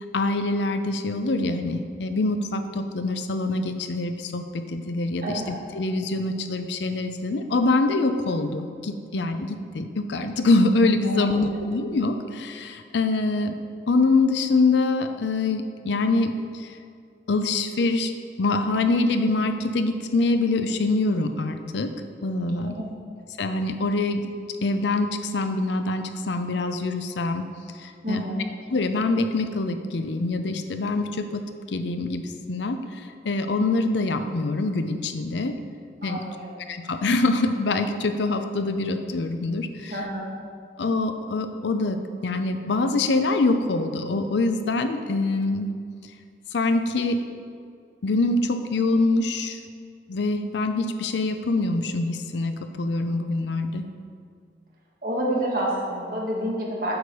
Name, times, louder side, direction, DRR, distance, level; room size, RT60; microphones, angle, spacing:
voice 1, 0.1-13.5 13.9-16.8 17.3-18.1 18.4-21.9 22.2-22.8 23.4-24.3 24.6-27.4 27.8-28.2 28.7-35.6 36.0-36.2 36.7-39.9 40.8-45.7 46.5-47.2 48.0-49.6 50.1-53.8, left 2 dB, 80° left, 8 dB, 0.5 m, -24 dB
voice 2, 5.2-5.5 11.0-11.6 22.6-23.0 28.0-28.5 36.0-36.5 39.9-40.3 55.0-56.9, right 1 dB, 50° right, -4 dB, 1.7 m, -29 dB
8.0 x 4.9 x 5.4 m, 2.2 s
head